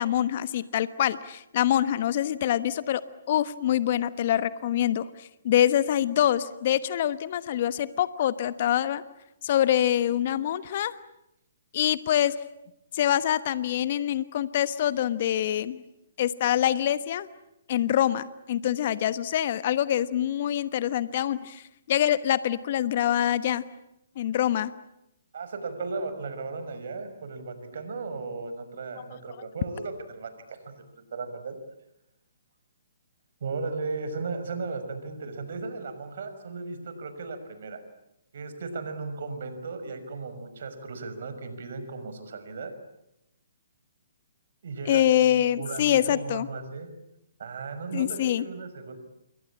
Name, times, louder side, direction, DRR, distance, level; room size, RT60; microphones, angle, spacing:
voice 1, 0.0-3.0 3.3-9.0 9.4-10.9 11.7-12.3 12.9-15.8 16.2-17.3 17.7-23.6 24.2-24.7 44.8-46.5 47.9-48.4, left 11 dB, 50° left, 14 dB, 1.2 m, -25 dB
voice 2, 25.3-30.7 31.1-31.6 33.4-37.8 38.3-42.7 44.6-46.9 47.4-49.0, right 4 dB, 60° right, 9 dB, 5.9 m, -36 dB
28.5 x 23.0 x 8.7 m, 0.86 s
figure-of-eight pair, 130°, 0 cm